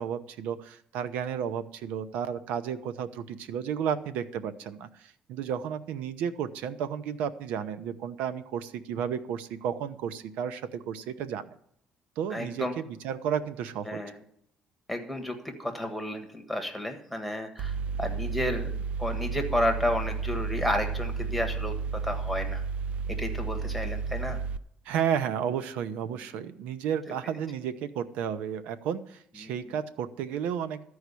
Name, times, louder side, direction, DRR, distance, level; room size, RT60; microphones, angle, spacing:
voice 1, 0.0-11.6 12.2-14.0 24.8-30.8, right 8 dB, 85° right, 13 dB, 0.8 m, -32 dB
voice 2, 12.3-12.7 13.9-14.1 14.9-22.6 23.1-24.4 26.4-26.5 29.4-29.5, left 1 dB, ahead, 4 dB, 1.6 m, -32 dB
Mechanical fan, 17.6-24.6, right 5 dB, 55° right, 0.4 m, -32 dB
13.0 x 4.8 x 8.3 m, 0.69 s
cardioid pair, 130°, 2 cm